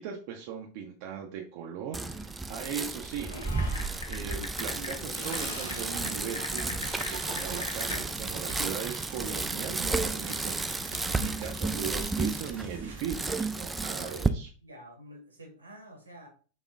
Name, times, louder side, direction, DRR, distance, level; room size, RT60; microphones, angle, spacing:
voice 1, 0.0-3.3 4.0-14.5, right 7 dB, 45° right, 1 dB, 0.6 m, -39 dB
Bicycle, 1.9-14.3, right 3 dB, 10° right, 0.3 m, -33 dB
sound 1, 3.0-13.0, right 3 dB, 65° right, 1.1 m, -46 dB
Typing, 3.2-8.0, left 2 dB, 75° left, 0.8 m, -40 dB
voice 2, 14.0-16.3, right 1 dB, 80° right, 2 dB, 1.4 m, -49 dB
4.1 x 3.0 x 3.6 m, 0.39 s
figure-of-eight pair, 90°, 0 cm